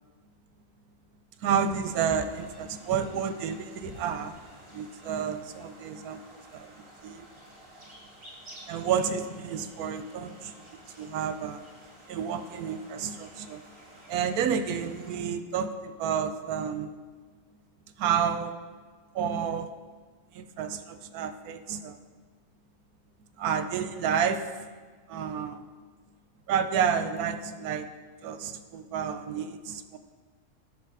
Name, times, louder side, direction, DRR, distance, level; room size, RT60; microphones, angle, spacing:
voice 1, 1.4-4.3 4.7-6.7 7.0-7.3 8.7-10.7 11.0-11.6 12.1-13.6 14.1-17.0 18.0-18.5 19.1-19.7 20.3-22.0 23.4-24.7 25.1-25.7 26.5-27.9 28.2-30.0, right 7 dB, 90° right, 9 dB, 1.2 m, -30 dB
sound 1, 1.5-15.2, equal, 35° right, 2.3 m, -49 dB
9.9 x 6.6 x 4.8 m, 1.5 s
omnidirectional pair, 1.5 m